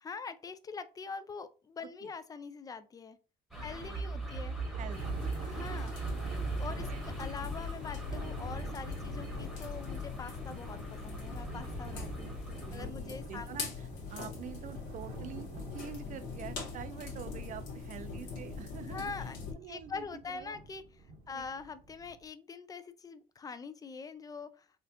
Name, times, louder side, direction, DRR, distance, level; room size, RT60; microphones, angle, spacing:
voice 1, 0.0-3.2 3.6-4.5 5.4-5.9 6.6-12.3 12.7-13.5 18.9-19.4 19.7-20.8 21.3-24.7, left 5 dB, 20° left, 0.4 m, -43 dB
sound 1, 3.5-12.9, right 2 dB, ahead, 1.1 m, -40 dB
voice 2, 3.5-4.3 4.8-5.8 6.7-7.0 12.2-12.3 12.7-19.3 19.5-20.6 21.3-21.5, right 9 dB, 50° right, 0.5 m, -47 dB
Thunder, 4.6-22.3, right 2 dB, 75° right, 1.0 m, -47 dB
sound 2, 4.9-19.5, left 5 dB, 80° left, 1.5 m, -43 dB
4.2 x 2.4 x 2.7 m
cardioid pair, 110°, 17 cm